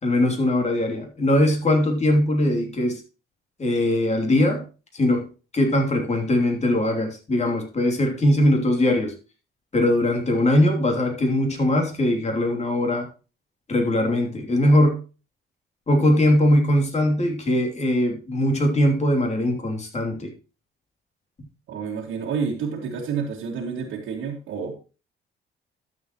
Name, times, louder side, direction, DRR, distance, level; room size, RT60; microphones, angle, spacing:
voice 1, 0.0-3.0 3.6-4.6 4.9-5.3 5.5-9.1 9.7-13.1 13.7-15.0 15.9-20.3, left 1 dB, 35° left, 2 dB, 3.0 m, -21 dB
voice 2, 21.7-24.7, right 6 dB, 85° right, -4 dB, 2.1 m, -29 dB
12.5 x 7.2 x 3.0 m, 0.32 s
cardioid pair, 90°, 20 cm